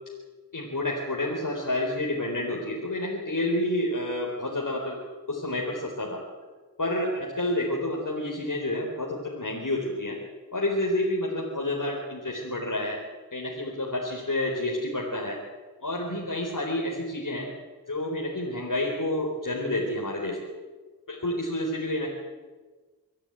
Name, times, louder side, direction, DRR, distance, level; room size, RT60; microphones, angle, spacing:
voice 1, 0.5-5.0 5.3-6.2 6.8-10.2 10.5-13.0 13.3-15.4 15.8-17.5 17.9-20.4 21.1-22.1, left 1 dB, 55° left, -2 dB, 4.3 m, -29 dB
25.0 x 13.5 x 9.1 m, 1.4 s
wide cardioid pair, 40°, 39 cm